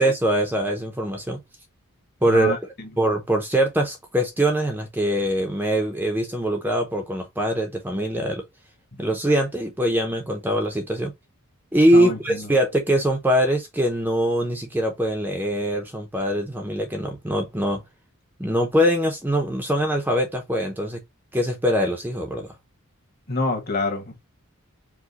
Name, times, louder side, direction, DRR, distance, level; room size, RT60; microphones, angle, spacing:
voice 1, 0.0-1.4 2.2-8.4 9.0-11.1 11.7-17.8 18.4-21.0 21.3-22.5, right 1 dB, 10° right, 0.6 m, -23 dB
voice 2, 11.9-12.4 23.3-24.2, left 3 dB, 45° left, 1.4 m, -26 dB
4.8 x 2.2 x 4.0 m
head